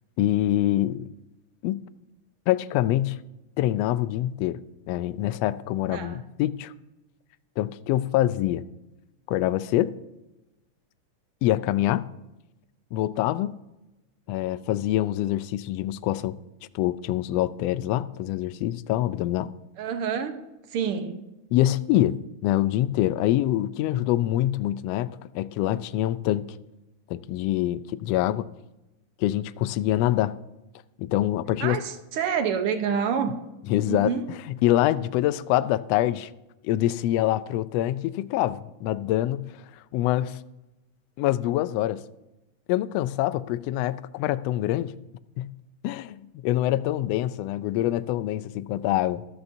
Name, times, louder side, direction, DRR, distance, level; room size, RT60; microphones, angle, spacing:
voice 1, 0.2-1.1 1.6-1.8 2.5-3.2 3.6-6.7 7.6-8.6 9.3-10.0 11.4-12.1 12.9-13.6 14.3-16.3 16.7-19.5 21.5-26.5 27.1-28.5 29.2-30.4 31.0-31.8 33.7-34.1 34.6-36.3 36.6-39.6 39.9-40.4 41.2-42.0 42.7-45.0 45.4-45.5 45.8-49.2, left 14 dB, 85° left, 1.4 m, -25 dB
voice 2, 19.8-20.4 20.7-21.2 31.6-33.3 33.8-34.3, right 7 dB, 65° right, 1.5 m, -27 dB
14.0 x 12.5 x 2.7 m
omnidirectional pair, 3.4 m